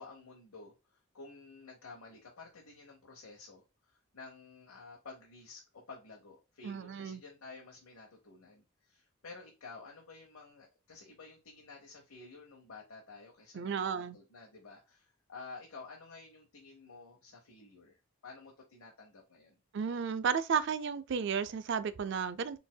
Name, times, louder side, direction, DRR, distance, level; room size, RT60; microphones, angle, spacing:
voice 1, 0.0-19.5, left 3 dB, 85° left, 0.9 m, -52 dB
voice 2, 6.6-7.2 13.5-14.2 19.7-22.6, right 6 dB, 55° right, 0.3 m, -33 dB
4.2 x 3.4 x 2.2 m
head